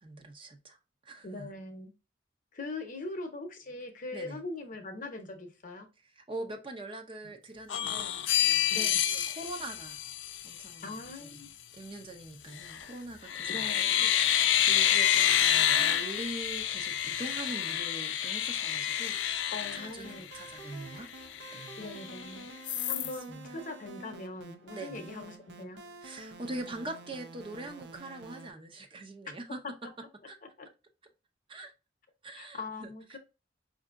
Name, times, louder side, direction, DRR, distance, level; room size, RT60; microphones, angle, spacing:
voice 1, 0.0-0.8 1.0-1.5 4.1-4.4 6.0-10.0 10.4-11.4 11.7-13.7 14.0-21.1 21.5-21.9 22.7-22.8 23.0-23.6 24.7-25.1 26.0-29.9 30.3-30.4 31.5-31.7 32.2-33.2, right 2 dB, 30° right, 0.5 m, -43 dB
voice 2, 1.2-1.9 2.5-5.9 7.2-7.3 8.7-9.0 10.8-11.5 13.5-14.0 19.5-20.3 21.8-22.5 22.9-25.8 29.6-29.9 30.6-30.7 32.4-33.2, left 2 dB, 45° left, 0.8 m, -41 dB
sound 1, 7.7-10.7 12.5-12.9 13.3-20.5 21.0-21.1 21.3-22.2 22.7-23.1, left 10 dB, 85° left, 0.4 m, -28 dB
sound 2, 19.8-28.5, right 2 dB, 75° right, 0.5 m, -49 dB
5.2 x 2.6 x 2.5 m
head